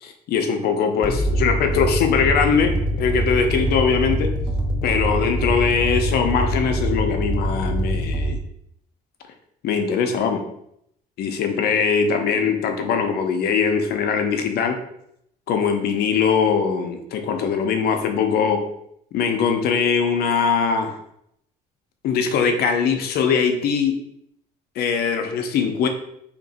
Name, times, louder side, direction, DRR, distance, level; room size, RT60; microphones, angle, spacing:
voice 1, 0.0-4.3 4.8-8.4 9.6-10.4 11.2-14.8 15.5-18.6 19.1-21.0 22.0-24.0 24.8-25.9, left 6 dB, 70° left, 5 dB, 0.6 m, -21 dB
sound 1, 1.0-8.3, equal, 5° right, 0.5 m, -24 dB
2.9 x 2.6 x 4.0 m, 0.74 s
cardioid pair, 110°, 17 cm